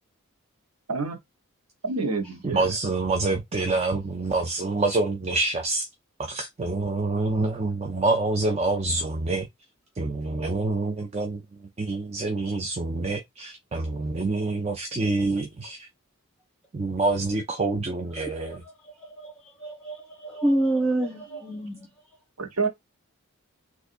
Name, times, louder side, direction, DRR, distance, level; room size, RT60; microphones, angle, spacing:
voice 1, 1.8-2.7 22.4-22.7, right 3 dB, 85° right, 1.0 m, -28 dB
voice 2, 2.4-5.9 6.2-9.5 10.0-11.4 11.8-15.9 16.7-18.5, right 3 dB, 30° right, 0.4 m, -26 dB
voice 3, 18.2-21.9, right 1 dB, 5° left, 1.7 m, -28 dB
3.6 x 2.5 x 2.4 m
head